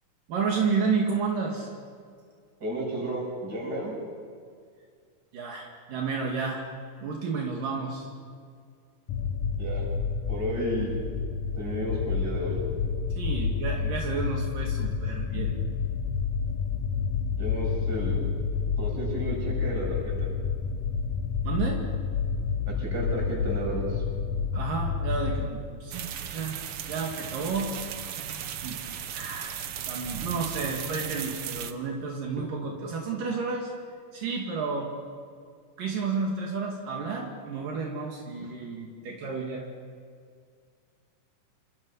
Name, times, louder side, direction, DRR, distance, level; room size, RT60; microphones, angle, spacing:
voice 1, 0.3-1.7 5.3-6.7 7.0-8.1 13.2-15.5 21.4-21.8 22.7-22.9 24.5-26.6 26.9-28.8 29.1-33.7 34.1-34.9 35.8-39.7, right 4 dB, 65° right, -1 dB, 3.8 m, -31 dB
voice 2, 2.6-3.9 9.6-9.9 10.3-11.0 11.5-12.7 17.4-18.2 18.8-20.3 22.7-24.0, equal, 25° right, -2 dB, 7.1 m, -32 dB
sound 1, 9.1-25.5, left 6 dB, 65° left, 1.9 m, -29 dB
sound 2, 25.9-31.7, right 9 dB, 85° right, 1.2 m, -36 dB
28.5 x 26.0 x 5.6 m, 2.1 s
omnidirectional pair, 4.1 m